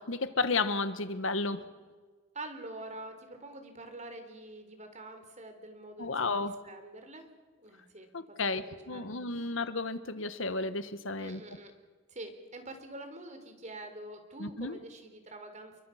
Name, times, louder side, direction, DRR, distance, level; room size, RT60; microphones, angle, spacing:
voice 1, 0.0-1.6 6.0-6.5 8.1-11.4 14.4-14.8, left 3 dB, 70° left, 11 dB, 1.5 m, -32 dB
voice 2, 2.3-7.3 7.6-8.1 8.4-9.5 11.2-11.7 12.1-15.8, right 2 dB, 35° right, 7 dB, 3.6 m, -46 dB
30.0 x 23.5 x 5.9 m, 1.4 s
head